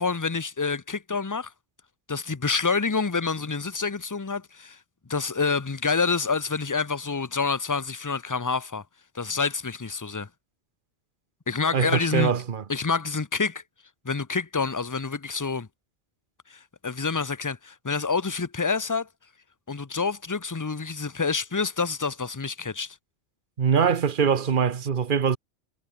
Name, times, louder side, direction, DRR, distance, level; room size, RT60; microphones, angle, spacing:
voice 1, 0.0-1.5 2.1-4.8 5.1-8.8 9.1-10.3 11.5-12.3 12.7-13.6 14.0-15.7 16.5-19.1 19.7-23.0, left 4 dB, 20° left, 0.6 m, -27 dB
voice 2, 11.7-12.6 23.6-25.4, right 7 dB, 45° right, 1.1 m, -23 dB
omnidirectional pair, 1.2 m